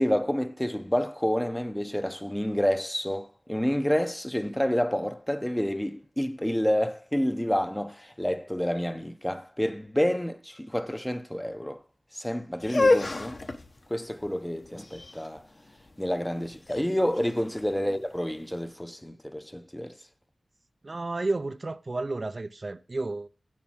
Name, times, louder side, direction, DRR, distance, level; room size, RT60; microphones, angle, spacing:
voice 1, 0.0-11.8 12.1-13.4 13.9-15.4 16.0-20.0, equal, 10° left, 0.7 m, -29 dB
sound 1, 12.6-18.5, left 2 dB, 45° left, 1.1 m, -29 dB
voice 2, 20.8-23.3, right 2 dB, 45° right, 0.5 m, -31 dB
8.3 x 7.3 x 6.1 m
wide cardioid pair, 95°, 0 cm